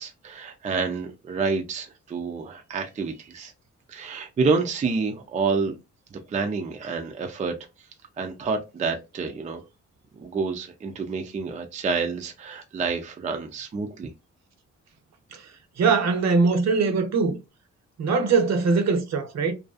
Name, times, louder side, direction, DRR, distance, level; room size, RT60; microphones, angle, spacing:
voice 1, 0.0-3.5 3.9-5.8 6.1-7.6 8.2-9.6 10.2-14.1, right 4 dB, 25° right, 0.3 m, -28 dB
voice 2, 15.8-17.4 18.0-19.5, right 4 dB, 65° right, 0.7 m, -21 dB
2.5 x 2.3 x 2.3 m
wide cardioid pair, 135°, 29 cm